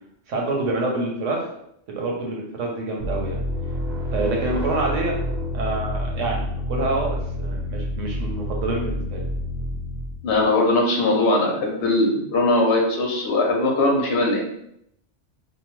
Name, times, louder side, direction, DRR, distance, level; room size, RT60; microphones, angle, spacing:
voice 1, 0.3-1.4 1.9-3.4 4.1-5.2 5.5-9.2, right 2 dB, 85° right, -1 dB, 1.1 m, -27 dB
sound 1, 3.0-10.4, left 1 dB, 65° right, 0.7 m, -28 dB
voice 2, 10.2-14.4, left 2 dB, 65° left, 0 dB, 0.8 m, -20 dB
2.8 x 2.0 x 3.0 m, 0.74 s
omnidirectional pair, 1.2 m